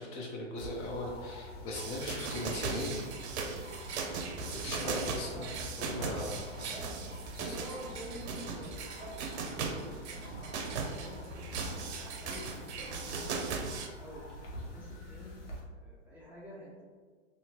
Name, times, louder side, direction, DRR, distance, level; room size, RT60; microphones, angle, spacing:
voice 1, 0.0-3.3 4.4-5.5 5.8-6.7 7.3-7.5, left 2 dB, 35° left, -1 dB, 0.6 m, -39 dB
sound 1, 0.6-15.6, left 1 dB, 75° left, 1.1 m, -47 dB
sound 2, 1.7-13.9, right 4 dB, 65° right, 0.6 m, -38 dB
voice 2, 4.7-5.5 6.7-6.9 7.4-9.8 10.7-12.4 12.8-13.4 14.0-14.2 14.6-15.4 15.7-16.8, equal, 5° right, -8 dB, 0.6 m, -48 dB
2.8 x 2.7 x 2.8 m, 1.5 s
hypercardioid pair, 120°, 36 cm